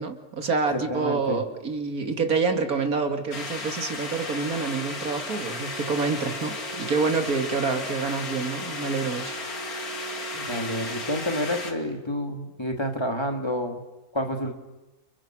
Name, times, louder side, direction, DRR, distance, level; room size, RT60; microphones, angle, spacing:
voice 1, 0.0-9.4, right 4 dB, 65° right, 6 dB, 2.7 m, -27 dB
voice 2, 0.7-1.4 10.3-13.8 14.1-14.5, equal, 15° left, 3 dB, 2.9 m, -29 dB
sound 1, 3.3-11.7, left 2 dB, 70° left, 2.8 m, -34 dB
29.5 x 29.0 x 6.2 m, 1.0 s
omnidirectional pair, 1.6 m